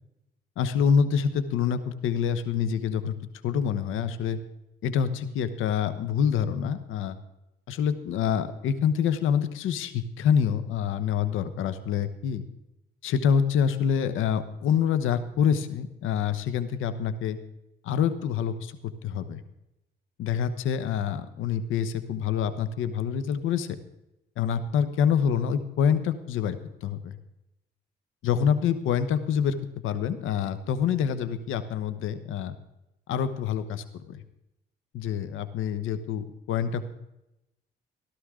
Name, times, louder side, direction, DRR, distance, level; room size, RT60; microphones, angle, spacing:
voice 1, 0.6-3.2 3.4-4.4 4.8-7.2 7.7-12.4 13.0-17.4 17.8-18.7 19.0-19.4 20.2-23.7 24.4-27.2 28.2-29.6 29.8-32.6 33.1-34.2 34.9-36.9, left 7 dB, 85° left, 12 dB, 1.1 m, -26 dB
16.5 x 13.0 x 3.8 m, 0.89 s
cardioid pair, 90°, 20 cm